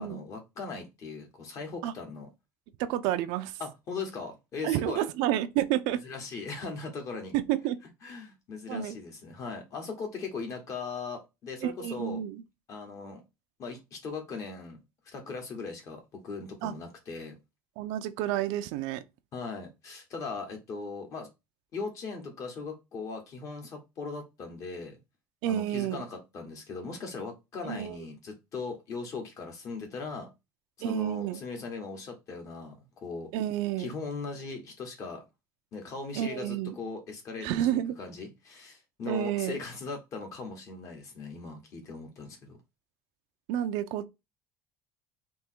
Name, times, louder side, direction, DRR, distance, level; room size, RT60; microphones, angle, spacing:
voice 1, 0.0-2.3 3.6-5.0 6.0-7.3 8.0-12.2 12.7-13.2 13.6-14.8 15.1-17.3 19.3-21.3 21.7-25.0 25.4-30.3 30.8-32.7 33.0-33.3 33.8-35.2 35.7-42.6, left 4 dB, 40° left, 1.6 m, -39 dB
voice 2, 2.8-3.6 4.6-6.0 7.3-7.8 8.7-9.0 11.6-12.4 16.6-16.7 17.8-19.0 25.4-26.1 27.6-28.0 30.8-31.4 33.3-33.9 36.2-36.8 37.4-37.9 39.1-39.6 43.5-44.1, right 12 dB, 80° right, 0.6 m, -30 dB
3.6 x 3.1 x 4.5 m
cardioid pair, 155°, 8 cm